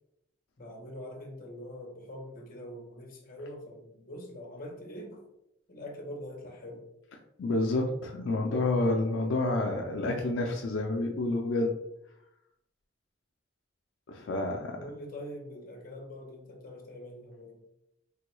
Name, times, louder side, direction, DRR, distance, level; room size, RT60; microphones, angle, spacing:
voice 1, 0.6-5.2 5.7-6.9 14.8-17.6, left 1 dB, 45° left, 1 dB, 0.7 m, -44 dB
voice 2, 7.4-11.7 14.1-14.8, left 2 dB, 80° left, 1 dB, 0.4 m, -29 dB
3.4 x 2.2 x 3.0 m, 0.81 s
head